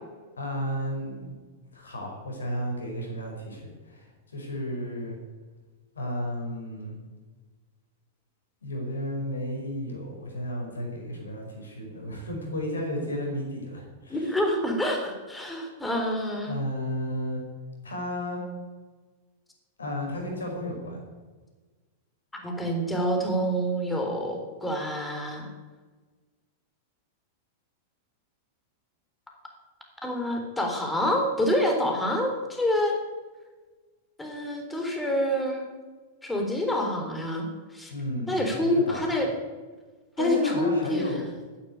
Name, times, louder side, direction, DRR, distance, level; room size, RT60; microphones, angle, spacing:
voice 1, 0.4-1.3 1.7-4.1 4.3-5.2 6.0-7.0 8.6-14.3 16.4-17.4 17.8-18.4 19.8-21.0 37.9-39.1 40.2-41.3, equal, 85° left, 1 dB, 5.2 m, -33 dB
voice 2, 14.1-16.5 22.3-25.5 30.0-33.0 34.2-35.6 36.2-37.5 37.7-37.9 38.3-39.3 40.2-41.1, left 1 dB, 10° left, 2 dB, 3.9 m, -27 dB
13.0 x 10.0 x 9.8 m, 1.3 s
hypercardioid pair, 100°, 0 cm